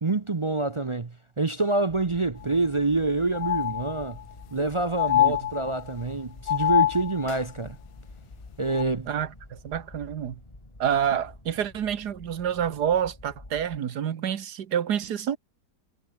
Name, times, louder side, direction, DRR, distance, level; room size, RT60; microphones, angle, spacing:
voice 1, 0.0-4.2 4.5-7.8 8.6-9.1, right 3 dB, 35° right, 0.5 m, -27 dB
sound 1, 1.9-13.8, left 1 dB, 20° left, 3.5 m, -49 dB
sound 2, 2.4-2.5 2.8-2.9 3.3-4.3 5.0-6.0 6.5-7.4 8.7-8.8, left 14 dB, 70° left, 0.9 m, -25 dB
voice 2, 9.1-10.4 10.8-15.4, right 9 dB, 75° right, 1.8 m, -28 dB
omnidirectional pair, 1.7 m